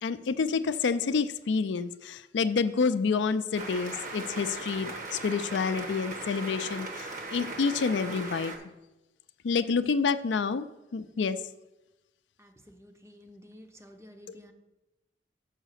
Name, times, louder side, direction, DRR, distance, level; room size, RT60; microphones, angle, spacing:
voice 1, 0.0-8.7 9.4-10.7 10.9-11.4, left 5 dB, 85° left, 12 dB, 0.4 m, -28 dB
sound 1, 3.5-8.6, right 2 dB, 45° right, 1.1 m, -38 dB
voice 2, 12.4-14.5, left 1 dB, 15° right, 6 dB, 0.6 m, -52 dB
6.4 x 5.0 x 6.4 m, 1.0 s
head